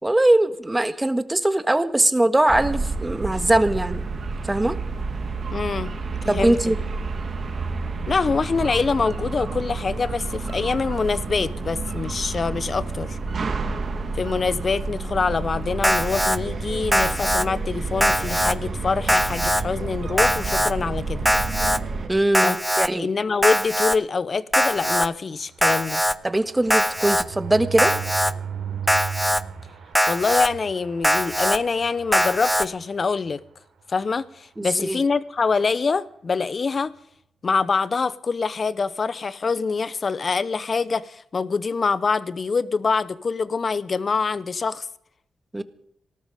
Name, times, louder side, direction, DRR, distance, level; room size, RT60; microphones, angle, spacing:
voice 1, 0.0-4.0 4.4-4.8 6.3-6.8 22.1-23.1 26.2-27.9 34.6-35.0 45.5-45.6, right 1 dB, 20° right, 1.6 m, -21 dB
sound 1, 2.5-22.1, right 4 dB, 60° right, 2.5 m, -30 dB
voice 2, 5.5-5.9 6.2-6.6 8.1-13.2 14.1-21.3 22.4-22.6 22.9-26.0 30.1-33.4 33.9-36.9 37.4-44.9, left 4 dB, 55° left, 0.9 m, -25 dB
Alarm, 15.8-16.4 16.9-17.5 18.0-18.5 19.1-19.6 20.2-20.7 21.3-21.8 22.3-22.9 23.4-24.0 24.5-25.1 25.6-26.1 26.7-27.2 27.8-28.3 28.9-29.4 30.0-30.5 31.0-31.6 32.1-32.7, equal, ahead, 0.8 m, -21 dB
sound 2, 24.5-33.4 33.8-34.0 34.2-34.3 34.6-34.9, right 7 dB, 85° right, 3.7 m, -37 dB
19.0 x 13.0 x 5.1 m
supercardioid pair, 45°, 0 cm